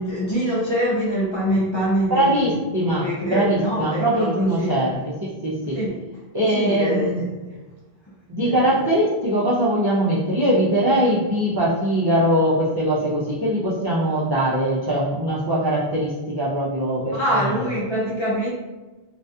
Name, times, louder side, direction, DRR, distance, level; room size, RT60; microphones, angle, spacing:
voice 1, 0.0-2.5 2.8-4.7 5.7-6.0 6.5-7.1 7.5-7.6 8.4-8.6 17.1-18.5, equal, 40° left, -7 dB, 0.4 m, -24 dB
voice 2, 2.1-5.8 6.3-7.3 8.3-17.7, right 1 dB, 40° right, -7 dB, 0.3 m, -21 dB
2.3 x 2.2 x 2.6 m, 1.1 s
omnidirectional pair, 1.0 m